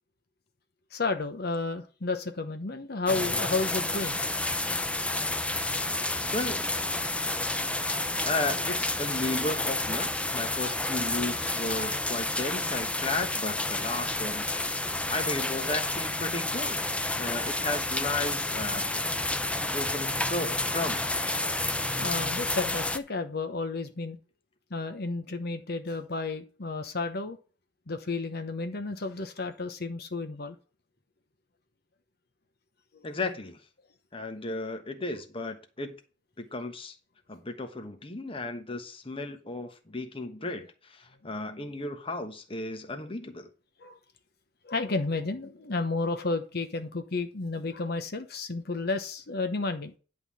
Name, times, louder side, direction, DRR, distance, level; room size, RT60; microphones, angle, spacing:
voice 1, 0.9-4.2 22.0-24.2 24.7-27.4 27.9-30.5 33.0-33.1 43.8-44.0 44.6-49.9, left 3 dB, 55° left, 1.0 m, -32 dB
sound 1, 3.1-23.0, left 2 dB, 5° left, 0.6 m, -30 dB
voice 2, 6.3-6.7 8.2-16.9 17.2-18.9 19.7-21.0 33.0-33.6 34.1-35.9 36.4-37.0 37.3-43.5, left 2 dB, 30° left, 1.2 m, -34 dB
10.5 x 3.8 x 7.4 m
head